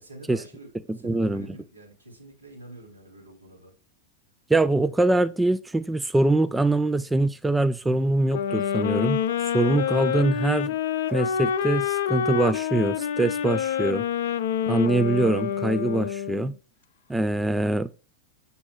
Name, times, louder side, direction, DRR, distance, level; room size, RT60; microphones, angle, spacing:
voice 1, 0.0-3.7, right 2 dB, 75° right, 3.2 m, -46 dB
voice 2, 0.9-1.5 4.5-10.7 11.1-14.0 14.7-16.5 17.1-17.9, right 2 dB, 5° right, 0.3 m, -23 dB
sound 1, 8.3-16.5, left 8 dB, 60° left, 0.5 m, -27 dB
7.8 x 6.7 x 2.3 m
figure-of-eight pair, 90°, 0 cm